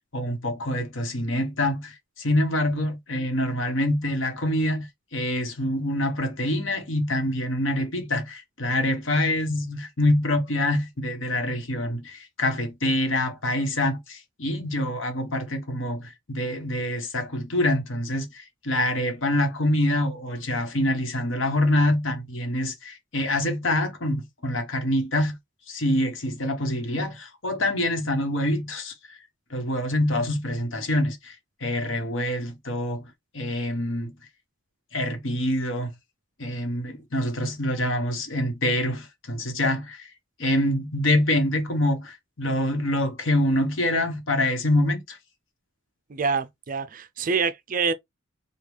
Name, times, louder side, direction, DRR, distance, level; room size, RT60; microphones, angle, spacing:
voice 1, 0.1-4.9 5.1-25.3 25.7-28.9 29.5-31.3 31.6-33.0 33.3-34.1 34.9-35.9 36.4-40.1 40.4-45.2, left 1 dB, 70° left, 1.1 m, -25 dB
voice 2, 46.1-47.9, right 5 dB, 40° right, 0.4 m, -26 dB
5.1 x 2.3 x 3.2 m
head